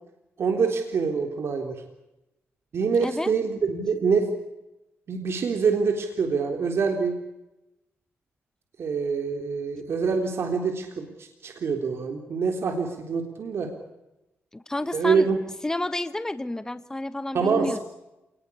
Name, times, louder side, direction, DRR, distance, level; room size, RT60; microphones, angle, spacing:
voice 1, 0.4-1.8 2.7-4.3 5.1-7.2 8.8-13.7 14.9-15.4 17.3-17.8, right 5 dB, 65° right, 4 dB, 3.6 m, -25 dB
voice 2, 3.0-3.3 14.5-15.3 15.6-17.8, left 1 dB, 10° left, 12 dB, 1.2 m, -30 dB
28.0 x 20.0 x 8.5 m, 0.95 s
cardioid pair, 105°, 5 cm